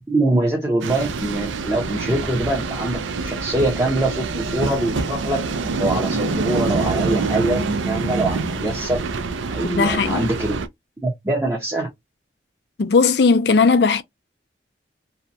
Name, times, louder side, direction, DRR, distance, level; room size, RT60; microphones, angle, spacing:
voice 1, 0.1-5.4 5.8-9.0 9.5-10.6 11.0-11.9, right 2 dB, 15° right, 0.7 m, -23 dB
sound 1, 0.8-10.7, right 4 dB, 90° right, 0.4 m, -26 dB
voice 2, 9.6-10.3 12.8-14.0, left 4 dB, 60° left, 0.4 m, -17 dB
2.8 x 2.2 x 2.5 m
head